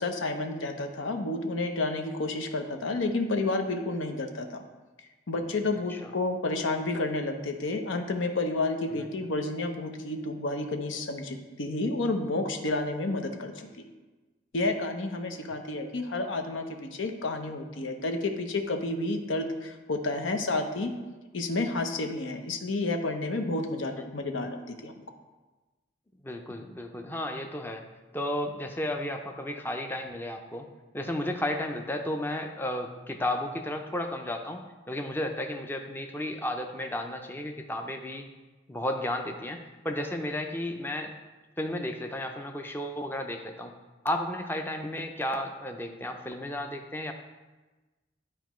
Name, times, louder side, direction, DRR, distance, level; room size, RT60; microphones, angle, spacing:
voice 1, 0.0-4.6 5.3-13.8 14.5-20.9 21.3-25.0, left 2 dB, 90° left, 5 dB, 0.8 m, -30 dB
voice 2, 26.2-27.8 28.1-30.7 30.9-38.3 38.7-41.1 41.6-43.7 44.0-47.1, left 1 dB, 10° left, 4 dB, 0.4 m, -33 dB
11.5 x 4.5 x 3.1 m, 1.2 s
head